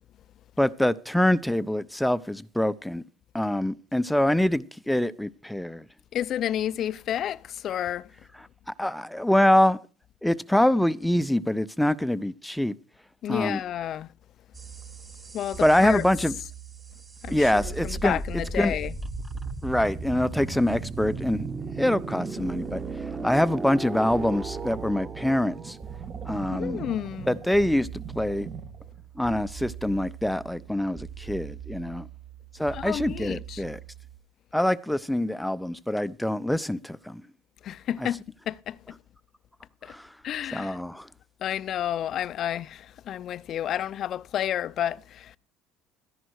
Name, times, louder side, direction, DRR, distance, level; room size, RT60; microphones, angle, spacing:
voice 1, 0.6-3.0 3.3-5.8 8.7-9.8 10.2-12.7 13.3-13.6 15.6-16.3 17.3-18.7 19.6-21.5 21.8-22.8 23.2-25.8 26.2-26.8 27.3-27.9 28.1-28.5 29.2-32.1 32.6-33.8 34.5-37.2 38.0-38.1 39.9-40.1 40.5-41.1, left 1 dB, 5° left, 0.7 m, -25 dB
voice 2, 6.1-8.1 13.2-14.1 15.3-16.0 17.2-18.9 26.5-27.3 32.7-33.6 37.6-38.2 38.5-39.0 39.8-39.9 40.2-40.8 41.4-45.4, left 11 dB, 50° left, 0.6 m, -31 dB
sound 1, 14.5-34.2, right 4 dB, 25° right, 1.9 m, -37 dB
sound 2, 21.1-29.0, right 5 dB, 50° right, 2.2 m, -44 dB
13.5 x 11.0 x 4.7 m
supercardioid pair, 100°, 0 cm